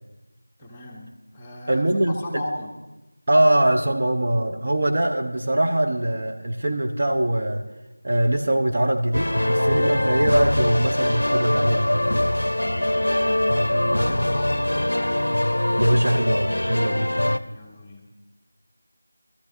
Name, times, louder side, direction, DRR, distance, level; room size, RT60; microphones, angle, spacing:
voice 1, 0.6-2.7 12.5-15.2 17.4-18.1, left 1 dB, 10° left, -3 dB, 0.8 m, -38 dB
voice 2, 1.7-2.4 3.3-7.6 8.0-12.1 15.8-17.1, right 1 dB, 40° right, 3 dB, 0.7 m, -22 dB
sound 1, 9.1-17.4, left 1 dB, 70° left, 0.5 m, -22 dB
18.5 x 13.0 x 2.6 m, 1.1 s
figure-of-eight pair, 175°, 0 cm